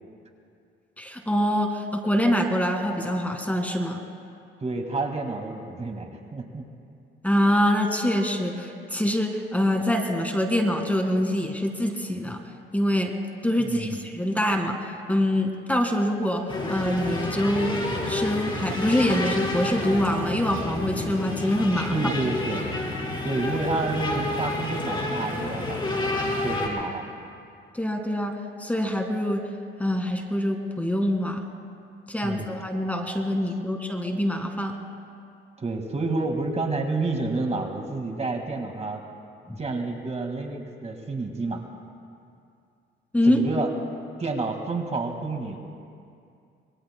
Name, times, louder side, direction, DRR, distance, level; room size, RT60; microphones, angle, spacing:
voice 1, 1.0-4.0 7.2-12.4 12.7-13.1 13.4-14.8 15.1-16.4 16.7-17.8 18.1-22.0 27.7-28.3 28.6-29.4 29.8-31.4 32.1-34.7 39.5-39.6 43.1-43.4, left 1 dB, 5° left, 2 dB, 1.9 m, -25 dB
voice 2, 4.6-6.6 13.6-14.1 21.7-22.7 23.2-27.0 32.2-32.5 35.6-39.0 39.6-41.6 43.2-43.7 44.2-45.6, right 3 dB, 35° right, 3 dB, 1.9 m, -29 dB
sound 1, 16.5-26.7, left 2 dB, 25° left, 4.4 m, -29 dB
26.0 x 22.5 x 2.2 m, 2.4 s
cardioid pair, 90°, 20 cm